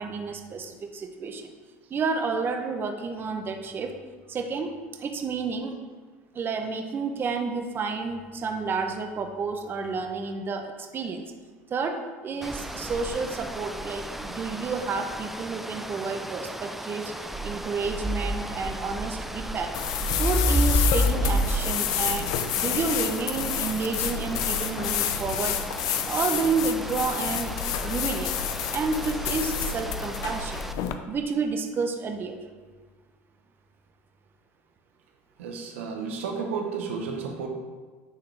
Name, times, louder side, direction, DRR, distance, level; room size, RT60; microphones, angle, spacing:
voice 1, 0.0-1.5 1.9-4.0 4.3-5.7 6.3-11.2 11.7-17.1 17.4-19.7 20.1-25.6 26.1-28.3 28.7-30.6 31.1-32.4, right 4 dB, 30° right, 5 dB, 0.7 m, -30 dB
sound 1, 12.4-30.7, equal, 5° right, 0.4 m, -32 dB
sound 2, 19.7-30.9, left 9 dB, 60° left, 0.5 m, -29 dB
voice 2, 35.4-37.5, right 5 dB, 90° right, 2 dB, 0.9 m, -33 dB
9.7 x 3.8 x 3.3 m, 1.4 s
supercardioid pair, 100°, 7 cm